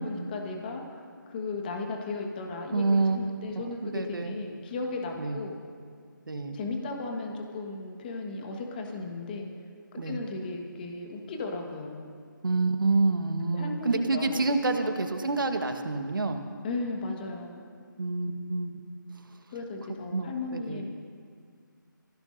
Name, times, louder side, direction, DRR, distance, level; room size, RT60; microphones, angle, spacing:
voice 1, 0.0-5.6 6.5-9.5 9.9-12.1 13.5-14.4 14.8-14.9 16.6-17.6 19.5-20.9, left 3 dB, 25° left, 2 dB, 1.5 m, -36 dB
voice 2, 2.7-3.2 3.5-4.3 5.2-5.4 6.3-6.6 10.0-10.2 12.4-16.4 18.0-18.8 20.1-20.8, right 3 dB, 75° right, 6 dB, 1.4 m, -28 dB
25.0 x 16.0 x 2.7 m, 2.1 s
figure-of-eight pair, 160°, 11 cm